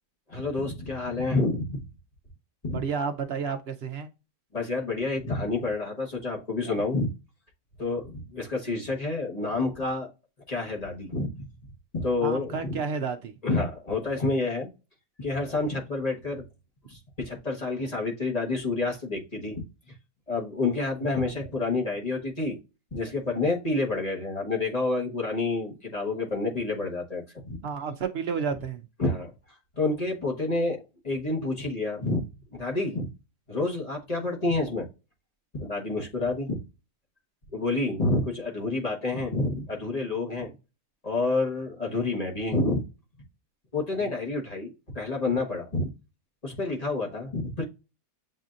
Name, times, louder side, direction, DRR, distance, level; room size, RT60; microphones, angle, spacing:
voice 1, 0.3-1.8 2.6-2.8 4.5-7.1 7.8-10.1 10.5-11.4 11.9-12.8 13.4-14.7 15.2-16.4 16.9-19.6 20.3-22.6 22.9-27.6 29.0-29.3 29.8-32.2 32.5-33.1 33.5-34.9 35.5-36.6 37.5-40.5 41.0-42.8 43.7-45.9 46.4-47.6, left 2 dB, 25° left, 1.1 m, -28 dB
voice 2, 2.7-4.1 12.2-13.3 21.2-21.3 27.6-28.9 44.0-44.2, right 6 dB, 70° right, 0.6 m, -31 dB
7.7 x 2.7 x 2.4 m
omnidirectional pair, 1.7 m